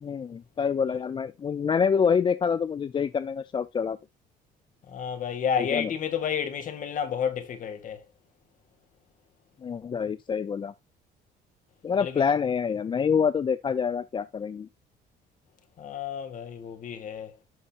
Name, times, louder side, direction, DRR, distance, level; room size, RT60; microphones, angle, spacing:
voice 1, 0.0-4.0 5.6-5.9 9.6-10.7 11.8-14.7, left 6 dB, 30° left, 0.4 m, -26 dB
voice 2, 4.9-8.0 12.0-12.3 15.8-17.3, left 7 dB, 50° left, 2.2 m, -31 dB
11.5 x 5.6 x 2.5 m
cardioid pair, 110°, 17 cm